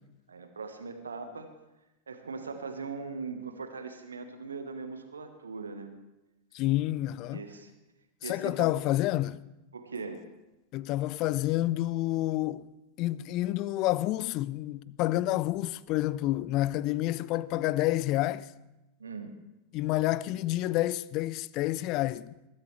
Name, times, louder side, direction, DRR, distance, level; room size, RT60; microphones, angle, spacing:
voice 1, 0.3-1.5 2.1-5.9 7.3-7.7 8.2-8.7 9.7-10.2 19.0-19.3, right 4 dB, 75° right, 1.2 m, -40 dB
voice 2, 6.5-7.4 8.2-9.4 10.7-12.7 13.0-18.5 19.7-22.3, left 16 dB, 40° left, 0.4 m, -29 dB
20.0 x 13.0 x 3.2 m
figure-of-eight pair, 90°, 0 cm